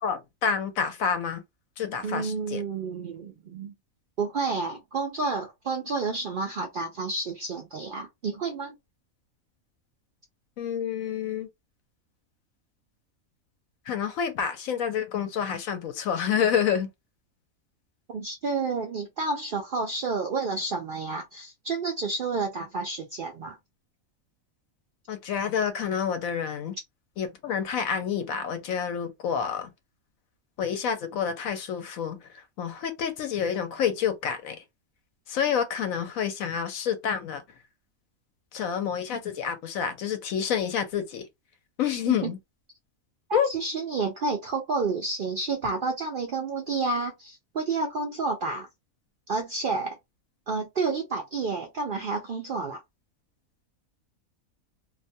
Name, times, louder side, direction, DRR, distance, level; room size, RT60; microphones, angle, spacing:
voice 1, 0.0-1.4 1.8-2.6 10.6-11.5 13.9-16.9 25.1-26.7 27.2-29.7 30.6-32.3 32.6-34.6 35.3-37.4 38.5-41.3 41.8-42.4 43.3-43.5, left 8 dB, 80° left, 1.0 m, -28 dB
voice 2, 2.0-3.7 4.2-8.7 18.1-23.6 42.1-42.3 43.3-48.7 49.3-50.0 50.5-52.8, right 4 dB, 65° right, 0.5 m, -30 dB
2.5 x 2.2 x 2.6 m
omnidirectional pair, 1.4 m